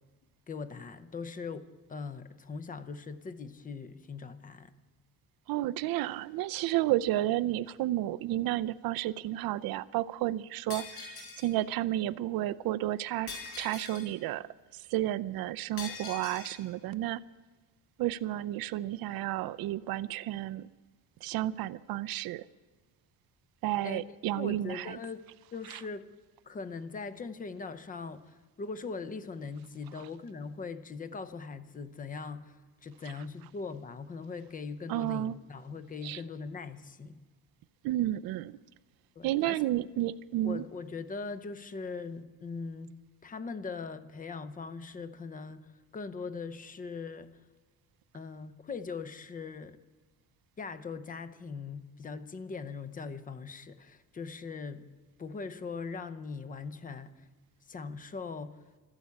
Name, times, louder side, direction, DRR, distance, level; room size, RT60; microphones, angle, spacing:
voice 1, 0.5-4.7 23.8-24.0 24.3-25.3 25.5-26.1 26.4-37.2 39.2-39.7 40.4-47.4 48.1-49.8 50.6-54.9 55.2-57.3 57.6-58.6, left 4 dB, 20° left, 0.6 m, -41 dB
voice 2, 5.5-13.3 13.6-14.5 14.9-17.2 18.0-20.7 21.2-22.4 23.6-25.0 25.7-25.8 34.9-35.3 36.0-36.2 37.8-38.5 39.2-40.6, right 14 dB, 65° right, 0.5 m, -31 dB
Shatter, 10.7-11.5 13.3-14.1 15.8-16.6, left 5 dB, 80° left, 5.3 m, -42 dB
13.0 x 13.0 x 8.3 m
cardioid pair, 175°, 38 cm